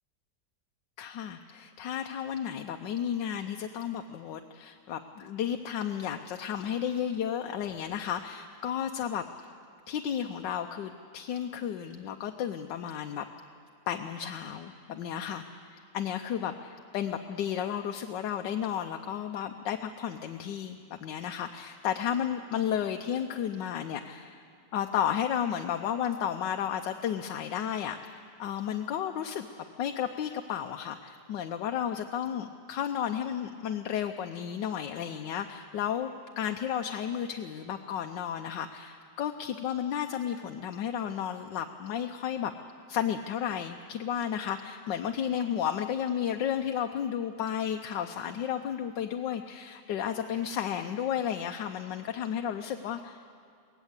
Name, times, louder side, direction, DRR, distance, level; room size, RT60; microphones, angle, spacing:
voice 1, 1.0-9.5 9.9-13.2 13.9-24.4 24.7-29.5 29.8-42.5 42.9-53.2, left 9 dB, 90° left, 5 dB, 1.4 m, -33 dB
23.5 x 18.0 x 8.1 m, 2.3 s
omnidirectional pair, 1.9 m